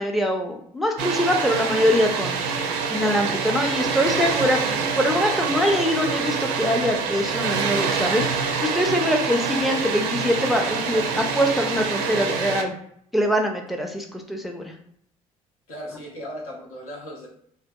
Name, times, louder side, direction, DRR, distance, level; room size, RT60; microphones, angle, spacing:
voice 1, 0.0-12.8 13.1-14.7, equal, ahead, 2 dB, 0.4 m, -23 dB
Water, 1.0-12.6, right 5 dB, 70° right, 0.4 m, -26 dB
voice 2, 15.7-17.3, equal, 85° left, -3 dB, 0.8 m, -37 dB
2.5 x 2.3 x 2.2 m, 0.68 s
hypercardioid pair, 60°, 17 cm